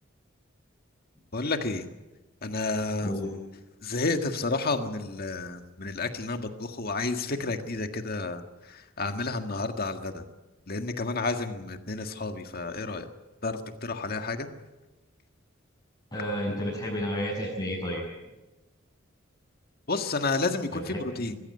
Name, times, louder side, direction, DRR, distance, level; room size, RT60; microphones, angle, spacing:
voice 1, 1.3-1.9 2.4-3.1 3.8-10.2 10.7-13.1 13.4-14.5 19.9-21.4, left 3 dB, 50° left, 7 dB, 1.8 m, -31 dB
voice 2, 3.0-3.3 16.1-18.0 20.7-21.0, equal, 25° left, -8 dB, 7.2 m, -31 dB
22.5 x 15.5 x 9.7 m, 1.1 s
head